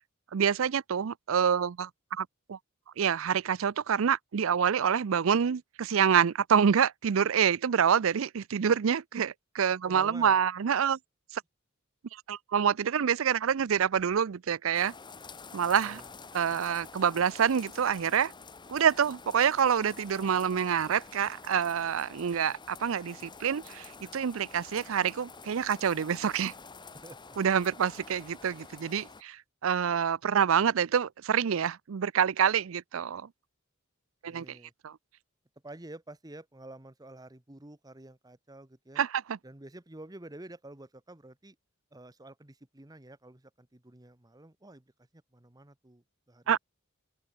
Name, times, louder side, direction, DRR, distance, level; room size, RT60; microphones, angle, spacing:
voice 1, 0.3-2.6 3.0-11.0 11.3-11.4 12.3-14.9 15.5-16.0 16.3-18.3 18.7-26.5 27.4-33.3 34.2-34.6 34.8-34.9 39.0-39.4 46.5-46.6, right 7 dB, 70° right, 0.5 m, -27 dB
voice 2, 9.8-10.4 15.8-16.1 27.0-27.4 34.2-34.7 35.6-39.0 39.4-41.6 41.9-46.6, right 1 dB, 20° right, 1.2 m, -49 dB
sound 1, 14.7-29.2, left 4 dB, 20° left, 1.0 m, -48 dB
open air
head